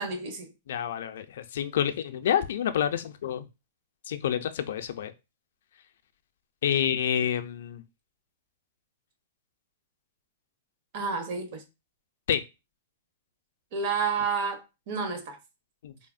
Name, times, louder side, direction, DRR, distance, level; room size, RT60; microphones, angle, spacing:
voice 1, 0.0-0.5 10.9-11.6 13.7-15.4, right 5 dB, 45° right, 0.7 m, -30 dB
voice 2, 0.7-3.4 4.1-5.1 6.6-7.8 12.3-12.4 15.8-15.9, left 9 dB, 70° left, 0.3 m, -28 dB
3.3 x 2.0 x 2.4 m
hypercardioid pair, 155°, 0 cm